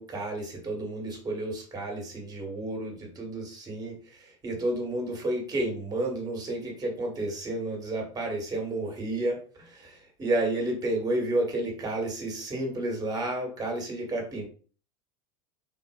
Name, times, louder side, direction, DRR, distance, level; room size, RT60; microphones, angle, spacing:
voice 1, 0.0-14.5, right 1 dB, 25° right, 1 dB, 1.3 m, -31 dB
3.8 x 2.5 x 2.3 m, 0.38 s
hypercardioid pair, 95°, 16 cm